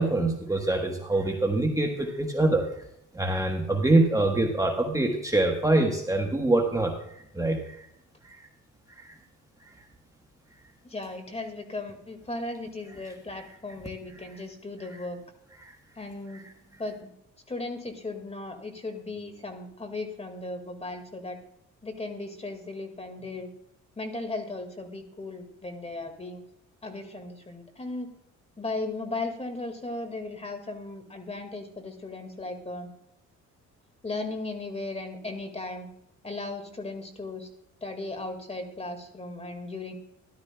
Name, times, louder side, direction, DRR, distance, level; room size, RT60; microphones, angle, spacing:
voice 1, 0.0-2.7 3.1-7.9 8.2-8.5 9.0-9.1 15.6-15.7, right 2 dB, 10° right, 2 dB, 1.2 m, -25 dB
voice 2, 10.8-15.2 16.0-16.4 16.8-17.1 17.5-21.4 21.8-23.5 24.0-26.4 26.8-28.1 28.6-32.9 34.0-35.9 36.2-37.5 37.8-39.9, left 2 dB, 20° left, 6 dB, 1.9 m, -36 dB
13.5 x 11.5 x 2.3 m, 0.80 s
cardioid pair, 90°, 30 cm